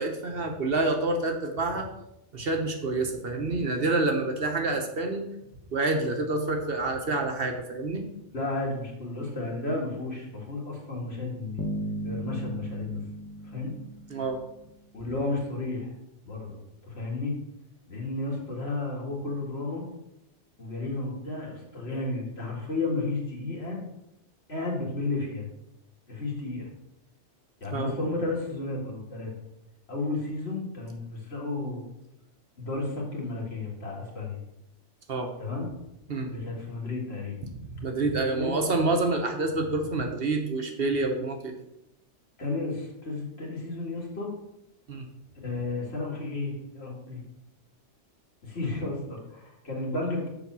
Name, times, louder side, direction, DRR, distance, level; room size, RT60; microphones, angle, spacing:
voice 1, 0.0-1.9 2.3-5.3 5.7-8.0 14.1-14.4 27.7-27.9 35.1-35.3 36.1-36.3 37.5-41.5 44.9-45.1, right 2 dB, 55° right, 4 dB, 1.2 m, -28 dB
voice 2, 8.3-11.6 12.0-13.0 13.4-13.7 14.9-15.9 16.2-16.6 16.8-17.4 17.9-19.9 20.6-23.8 24.5-25.5 26.1-26.7 27.6-29.3 29.9-31.9 32.6-34.4 35.4-35.7 36.3-37.4 38.4-38.6 42.4-44.3 45.4-47.2 48.4-50.3, left 2 dB, 60° left, -2 dB, 2.3 m, -32 dB
Bass guitar, 11.6-14.7, equal, 15° left, 0.7 m, -36 dB
7.0 x 4.9 x 6.0 m, 0.86 s
omnidirectional pair, 1.2 m